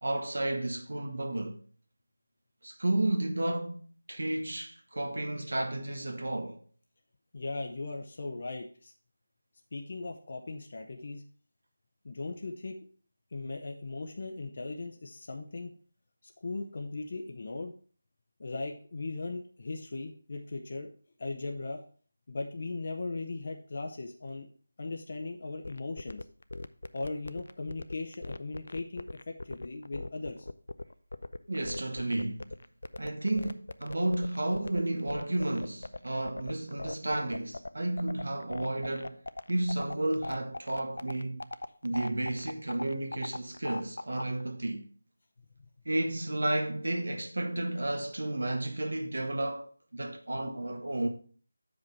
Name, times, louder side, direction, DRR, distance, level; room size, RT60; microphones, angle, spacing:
voice 1, 0.0-1.6 2.6-3.8 4.1-6.6 31.5-32.4 33.0-39.2 39.5-41.5 41.8-44.8 45.8-51.1, right 1 dB, 80° right, 1.1 m, -32 dB
voice 2, 7.3-8.9 9.7-11.2 12.0-12.8 13.3-15.7 16.2-17.7 18.4-20.9 21.2-21.8 22.3-24.5 24.8-26.2 26.9-30.5, left 3 dB, 40° left, 0.7 m, -38 dB
sound 1, 25.6-44.4, left 2 dB, 80° left, 0.5 m, -39 dB
7.1 x 5.1 x 4.6 m
figure-of-eight pair, 175°, 0 cm